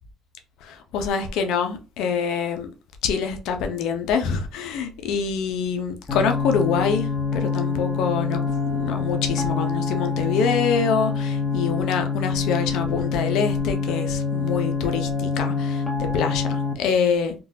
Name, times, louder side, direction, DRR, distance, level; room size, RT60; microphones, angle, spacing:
voice 1, 0.6-2.7 3.0-17.3, left 6 dB, 80° left, 0.6 m, -25 dB
sound 1, 6.1-16.7, left 5 dB, 35° left, 1.1 m, -25 dB
3.8 x 2.3 x 2.7 m
cardioid pair, 90°, 0 cm